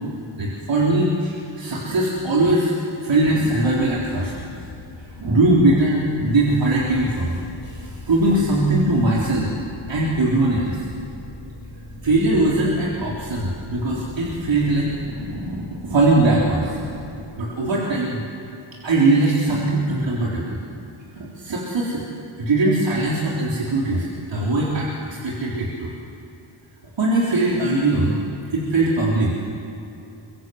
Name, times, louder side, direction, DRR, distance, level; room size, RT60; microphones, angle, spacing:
voice 1, 0.4-2.7 3.0-4.5 5.2-7.4 7.6-9.5 9.9-10.8 12.0-16.8 17.4-18.2 18.8-20.6 21.2-22.0 22.4-25.9 27.0-28.2 28.5-29.5, right 2 dB, 65° right, -5 dB, 3.8 m, -21 dB
sound 1, 3.2-17.2, left 2 dB, 90° left, 4.6 m, -39 dB
24.0 x 24.0 x 7.9 m, 2.9 s
wide cardioid pair, 90°, 48 cm